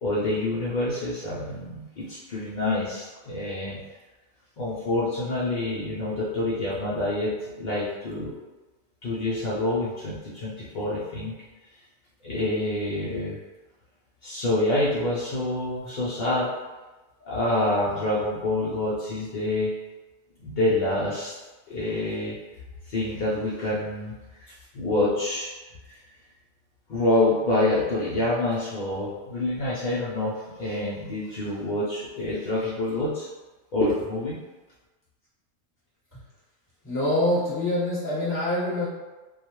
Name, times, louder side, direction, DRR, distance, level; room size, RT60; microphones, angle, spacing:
voice 1, 0.0-3.8 4.6-8.3 9.0-11.4 12.2-13.4 14.2-16.5 17.2-19.7 20.4-21.3 21.7-22.4 22.9-24.1 24.5-25.5 25.9-26.0 26.9-33.3 33.7-34.4, left 1 dB, 75° left, -8 dB, 0.4 m, -27 dB
voice 2, 36.8-38.9, left 1 dB, 10° left, -11 dB, 1.1 m, -25 dB
2.3 x 2.2 x 2.9 m, 1.2 s
omnidirectional pair, 1.4 m